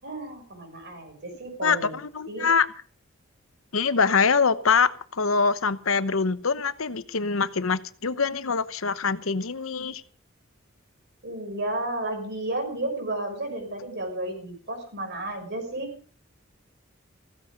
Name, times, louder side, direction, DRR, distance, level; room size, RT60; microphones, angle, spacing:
voice 1, 0.0-2.0 2.3-2.5 11.2-15.9, right 1 dB, 55° right, 5 dB, 6.0 m, -32 dB
voice 2, 1.6-2.7 3.7-10.0, left 5 dB, 80° left, 14 dB, 1.0 m, -24 dB
16.0 x 14.5 x 5.2 m, 0.41 s
head